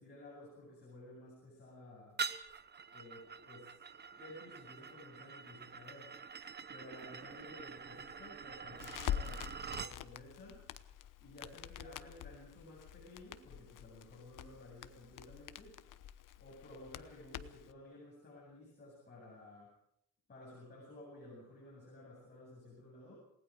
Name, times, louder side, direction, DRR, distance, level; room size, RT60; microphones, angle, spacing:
voice 1, 0.0-2.2 2.9-3.8 4.2-6.1 6.7-10.6 11.2-15.8 16.4-19.7 20.3-23.2, left 1 dB, 30° left, -4 dB, 8.0 m, -54 dB
sound 1, 2.2-10.0, right 6 dB, 30° right, 0.9 m, -45 dB
Crackle, 8.8-17.7, left 10 dB, 70° left, 1.0 m, -45 dB
28.5 x 19.0 x 5.1 m, 0.75 s
cardioid pair, 150°, 33 cm